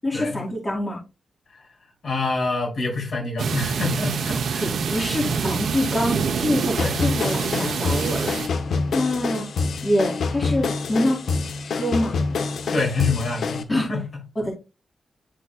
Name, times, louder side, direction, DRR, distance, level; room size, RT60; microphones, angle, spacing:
voice 1, 0.0-1.0 4.6-8.4 8.9-9.5 9.8-11.2 11.8-12.2 13.7-13.9 14.4-14.5, left 1 dB, 25° left, 2.4 m, -25 dB
voice 2, 2.0-5.1 6.8-7.1 12.7-13.6 13.9-14.0, left 3 dB, 60° left, 3.5 m, -26 dB
sound 1, 3.4-8.5, right 6 dB, 85° right, 0.9 m, -26 dB
sound 2, 6.8-13.6, left 4 dB, 75° left, 0.9 m, -26 dB
11.0 x 4.1 x 2.4 m
wide cardioid pair, 130°, 0 cm